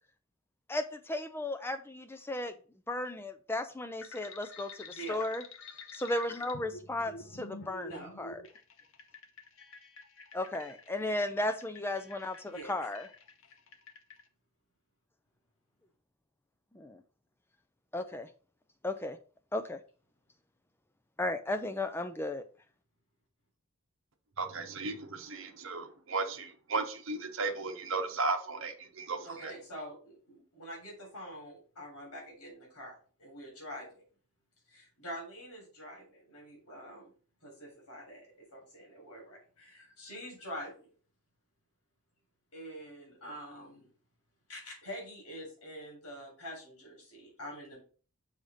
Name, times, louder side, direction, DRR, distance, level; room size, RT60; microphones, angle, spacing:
voice 1, 0.7-2.5 2.9-5.4 5.9-8.4 10.3-13.1 16.7-17.0 17.9-18.3 18.8-19.2 19.5-19.8 21.2-22.4, left 1 dB, 10° left, 0.5 m, -35 dB
sound 1, 4.0-14.2, left 3 dB, 65° left, 0.8 m, -49 dB
voice 2, 4.9-5.2 7.8-8.1 12.4-12.7 29.2-32.9 33.2-34.0 34.7-37.1 37.4-40.9 42.5-43.9 44.5-47.8, equal, 85° left, 3.4 m, -46 dB
voice 3, 24.4-29.5, right 3 dB, 60° right, 0.9 m, -35 dB
6.4 x 3.3 x 5.5 m
head